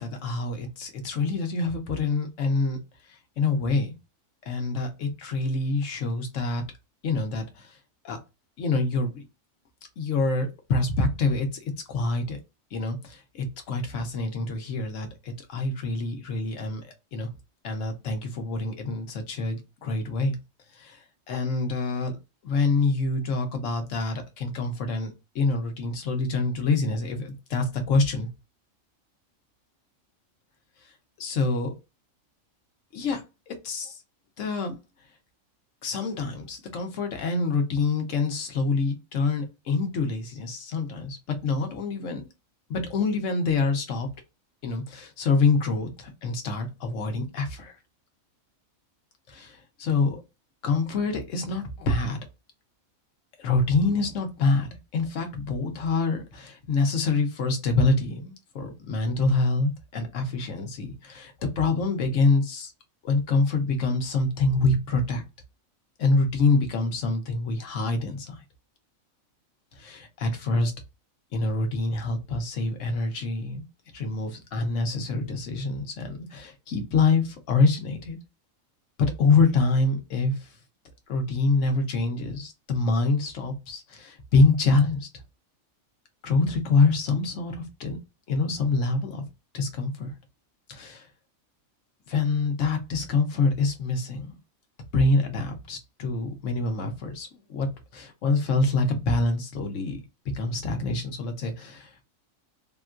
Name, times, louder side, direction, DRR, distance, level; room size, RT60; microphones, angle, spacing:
voice 1, 0.0-2.8 3.4-3.9 4.5-6.6 7.0-7.8 8.0-8.2 8.6-9.2 10.0-12.4 12.7-17.3 17.6-20.3 20.8-21.0 21.3-22.1 22.4-28.3 31.2-31.7 32.9-34.0 34.4-34.8 35.8-42.3 42.7-44.1 44.6-47.8 49.3-50.2 50.6-52.2 53.4-62.7 63.0-65.2 66.0-68.4 69.7-70.7 71.3-73.6 73.9-78.2 79.0-80.5 81.1-85.1 86.2-88.0 88.3-89.2 89.5-90.1 90.7-91.1 92.1-94.3 94.9-100.0 100.3-102.1, left 3 dB, 70° left, 1.2 m, -26 dB
3.7 x 2.3 x 2.5 m
omnidirectional pair, 1.4 m